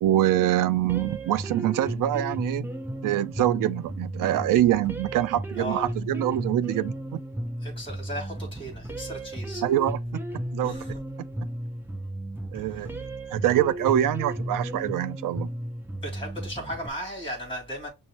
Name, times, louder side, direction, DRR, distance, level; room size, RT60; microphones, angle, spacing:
voice 1, 0.0-2.7 3.0-7.2 9.6-10.0 10.5-10.7 12.5-13.0 13.3-15.5, right 12 dB, 65° right, 0.5 m, -24 dB
sound 1, 0.9-16.9, right 1 dB, 5° right, 0.4 m, -34 dB
voice 2, 5.6-5.9 7.6-9.6 10.6-11.0 12.5-12.9 16.0-17.9, equal, 15° left, 2.9 m, -36 dB
6.1 x 2.8 x 3.0 m
cardioid pair, 170°, 36 cm